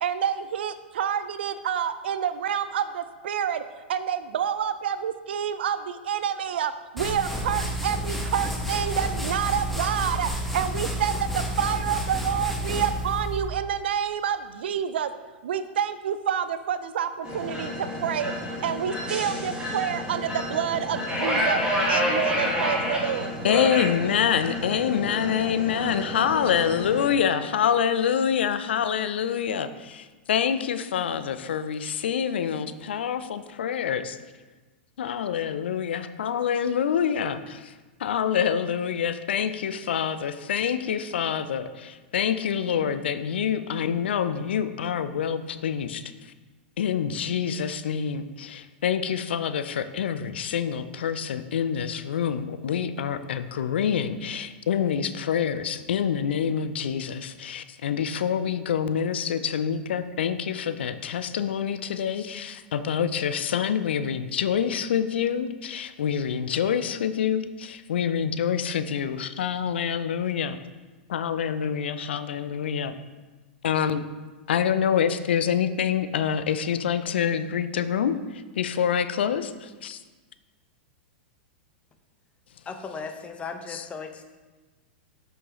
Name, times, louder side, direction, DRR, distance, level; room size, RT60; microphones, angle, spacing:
voice 1, 0.0-3.6 3.9-15.1 15.4-18.3 18.6-21.6 21.9-23.3, right 8 dB, 70° right, 12 dB, 0.5 m, -28 dB
sound 1, 7.0-13.5, right 1 dB, ahead, 1.2 m, -30 dB
sound 2, 17.2-27.1, left 1 dB, 15° right, 2.0 m, -29 dB
voice 2, 23.4-34.2 35.0-37.7 38.0-46.3 46.8-70.6 71.1-72.9 73.6-74.0 74.5-80.0 83.7-83.9, left 8 dB, 75° left, 12 dB, 0.4 m, -26 dB
voice 3, 82.7-84.2, left 5 dB, 20° left, 7 dB, 0.8 m, -36 dB
7.6 x 6.3 x 3.1 m, 1.3 s
hypercardioid pair, 105°, 6 cm